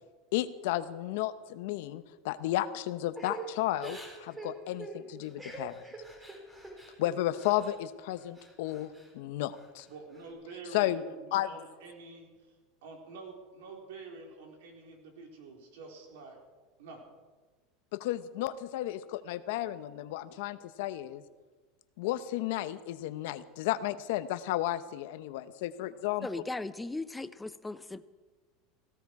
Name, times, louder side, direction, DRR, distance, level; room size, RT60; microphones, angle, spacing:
voice 1, 0.3-5.8 7.0-9.9 10.7-11.0 11.3-11.5 17.9-21.2 22.0-26.4, left 14 dB, 75° left, 13 dB, 0.9 m, -33 dB
Crying sobbing / Breathing, 3.1-7.8 8.1-9.1 9.5-10.3, right 3 dB, 10° right, 4.2 m, -45 dB
voice 2, 9.9-12.5 12.8-16.4 16.8-17.0, right 4 dB, 85° right, 1 dB, 4.3 m, -48 dB
voice 3, 26.2-28.0, left 2 dB, 10° left, 13 dB, 0.7 m, -37 dB
17.5 x 16.5 x 4.8 m, 1.3 s
supercardioid pair, 135°, 0 cm